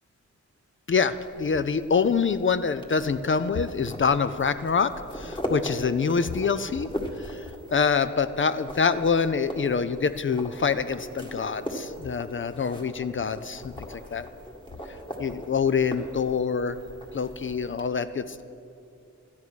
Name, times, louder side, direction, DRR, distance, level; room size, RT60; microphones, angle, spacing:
voice 1, 0.9-6.9 7.2-7.5 7.7-14.3 15.2-16.8 17.1-18.4, left 5 dB, 45° left, 12 dB, 0.5 m, -26 dB
sound 1, 1.1-17.9, equal, 15° left, 1.8 m, -39 dB
13.0 x 9.6 x 6.2 m, 2.5 s
wide cardioid pair, 85°, 29 cm